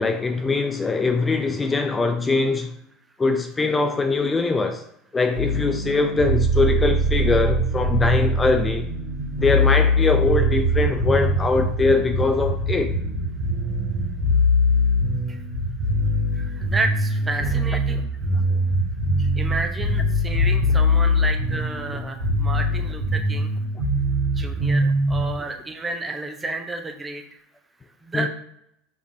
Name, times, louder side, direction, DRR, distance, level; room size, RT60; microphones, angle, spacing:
voice 1, 0.0-2.7 3.2-4.8 5.1-8.9 9.4-12.9 17.9-18.0 28.1-28.3, left 3 dB, 20° left, 0.3 m, -22 dB
sound 1, 5.3-25.3, equal, 80° right, 1.6 m, -22 dB
voice 2, 16.3-18.1 19.2-23.5 24.3-27.2 28.0-28.3, right 3 dB, 15° right, 0.7 m, -31 dB
4.7 x 3.4 x 2.6 m
hypercardioid pair, 85°, 0 cm